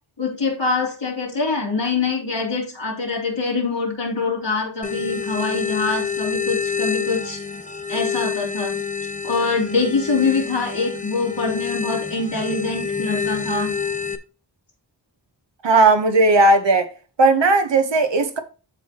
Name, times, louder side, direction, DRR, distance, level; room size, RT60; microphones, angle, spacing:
voice 1, 0.2-7.4 7.9-8.8 9.2-13.7, left 4 dB, 90° left, 3.5 m, -24 dB
sound 1, 4.8-14.2, left 6 dB, 15° left, 1.0 m, -27 dB
voice 2, 15.6-16.9 17.2-18.4, right 2 dB, 80° right, 1.0 m, -16 dB
13.5 x 4.5 x 2.9 m
wide cardioid pair, 50°, 43 cm